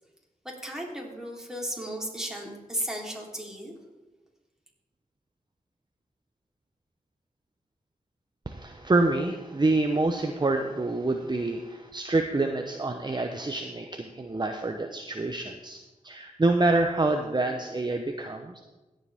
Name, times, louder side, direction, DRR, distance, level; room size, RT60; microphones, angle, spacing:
voice 1, 0.4-3.7, equal, 5° right, -2 dB, 3.4 m, -35 dB
voice 2, 8.5-18.6, right 2 dB, 30° right, 4 dB, 0.8 m, -27 dB
16.5 x 7.7 x 3.6 m, 1.1 s
cardioid pair, 45°, 15 cm